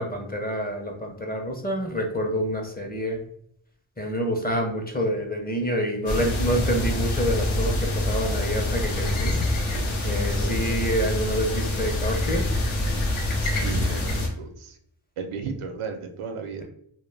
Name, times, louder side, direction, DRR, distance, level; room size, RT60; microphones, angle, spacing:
voice 1, 0.0-3.2 4.0-9.4 10.0-12.5, equal, 20° left, 2 dB, 0.5 m, -27 dB
sound 1, 6.1-14.3, left 1 dB, 75° left, 0.8 m, -25 dB
voice 2, 13.3-14.8 15.2-16.6, right 5 dB, 80° right, 5 dB, 0.6 m, -35 dB
2.1 x 2.1 x 3.2 m, 0.69 s
cardioid pair, 60°, 50 cm